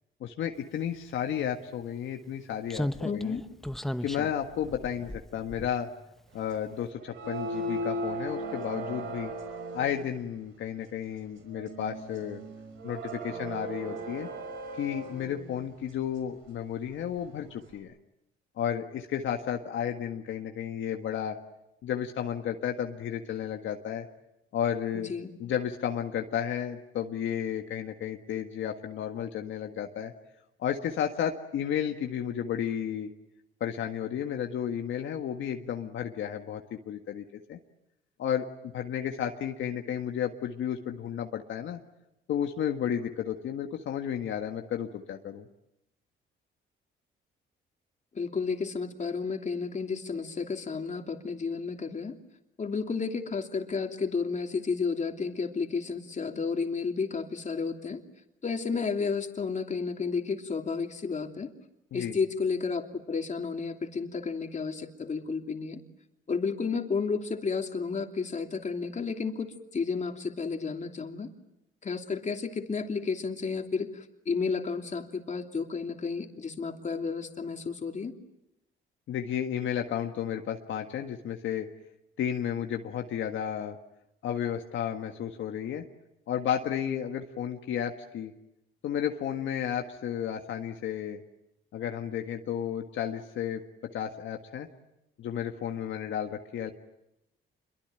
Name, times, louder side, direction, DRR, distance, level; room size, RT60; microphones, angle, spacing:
voice 1, 0.2-3.4 4.0-5.9 6.3-9.3 9.7-12.4 12.8-14.3 14.8-17.9 18.6-21.4 21.8-24.1 24.5-25.1 25.4-30.1 30.6-33.1 33.6-37.6 38.2-38.5 38.7-41.8 42.3-45.5 61.9-62.2 79.1-81.7 82.2-83.8 84.2-85.8 86.3-88.3 88.8-91.2 91.7-93.6 93.9-94.7 95.2-96.7, left 9 dB, 75° left, 3 dB, 1.8 m, -32 dB
Slam, 1.3-1.4 2.7-6.2 6.5-6.7, left 1 dB, ahead, 0.9 m, -36 dB
voice 2, 3.0-3.4 24.9-25.4 48.1-52.2 52.6-58.0 58.4-61.5 61.9-65.8 66.3-71.3 71.8-78.1, left 5 dB, 35° left, 4 dB, 3.0 m, -32 dB
sound 1, 7.0-10.1 11.6-15.5, right 1 dB, 85° right, 5.7 m, -37 dB
27.0 x 23.0 x 9.1 m, 0.87 s
cardioid pair, 90°, 20 cm